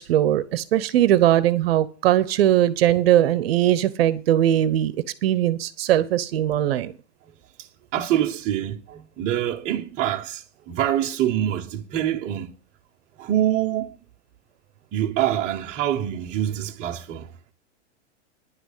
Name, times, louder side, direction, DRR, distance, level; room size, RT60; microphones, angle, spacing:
voice 1, 0.0-4.9 5.2-6.9, right 12 dB, 55° right, 0.9 m, -20 dB
voice 2, 7.9-12.5 13.2-14.0 14.9-17.5, right 11 dB, 20° right, 0.9 m, -25 dB
10.5 x 6.0 x 8.2 m
supercardioid pair, 165°, 36 cm